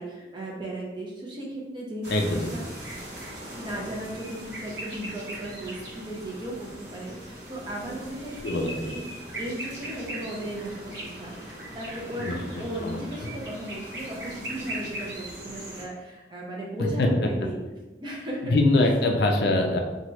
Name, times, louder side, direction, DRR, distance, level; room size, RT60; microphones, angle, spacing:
voice 1, 0.0-2.6 3.5-9.0 9.4-17.6 18.0-18.6, right 1 dB, 25° right, -3 dB, 0.6 m, -36 dB
sound 1, 2.0-15.8, right 1 dB, 75° right, 0.9 m, -39 dB
voice 2, 2.1-2.5 8.4-8.9 12.2-12.4 12.8-13.0 16.8-17.1 18.5-19.8, left 2 dB, 60° left, 2 dB, 0.4 m, -23 dB
3.0 x 2.3 x 2.9 m, 1.1 s
head